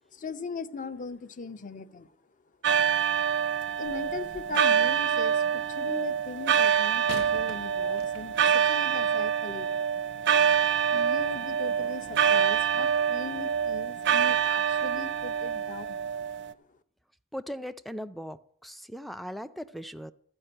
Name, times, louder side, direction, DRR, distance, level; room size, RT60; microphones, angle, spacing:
voice 1, 0.1-2.1 3.8-9.8 10.9-16.0, left 4 dB, 40° left, 0.6 m, -39 dB
sound 1, 2.6-16.5, right 8 dB, 55° right, 0.5 m, -26 dB
sound 2, 3.8-4.7 7.1-8.6 9.4-9.5, left 3 dB, 90° left, 1.0 m, -45 dB
voice 2, 17.3-20.1, equal, ahead, 0.4 m, -39 dB
13.5 x 5.2 x 8.7 m
head